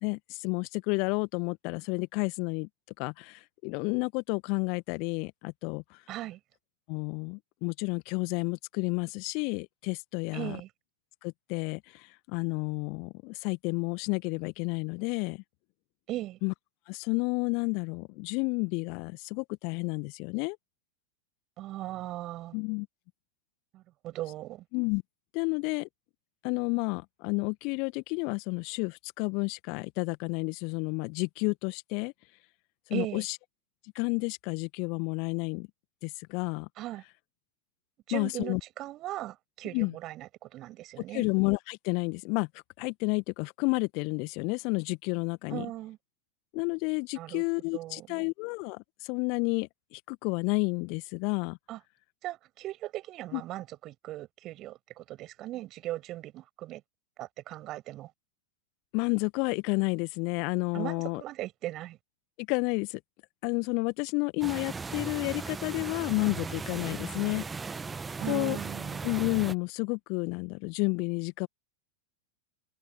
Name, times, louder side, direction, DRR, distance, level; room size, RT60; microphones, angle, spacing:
voice 1, 0.0-2.7 3.0-6.0 6.9-10.6 11.2-15.4 16.4-16.5 16.9-20.6 22.5-22.9 24.7-25.0 25.3-25.9 26.4-32.1 32.9-33.4 33.9-35.7 36.0-36.7 38.1-38.6 39.7-39.9 41.1-42.5 42.8-45.6 46.5-51.6 53.3-53.4 58.9-61.2 62.4-63.0 63.4-67.4 68.3-68.6 69.0-71.5, left 33 dB, 45° left, 1.7 m, -31 dB
voice 2, 6.1-6.4 10.3-10.7 16.1-16.4 21.6-22.6 23.7-24.6 32.9-33.3 36.8-37.0 38.1-41.3 45.5-46.0 47.1-47.4 47.7-48.3 51.7-51.8 52.2-56.8 57.2-58.1 60.7-62.0 68.2-69.0, right 15 dB, 35° right, 7.6 m, -38 dB
sound 1, 64.4-69.5, right 4 dB, 15° right, 1.6 m, -37 dB
figure-of-eight pair, 90°, 0 cm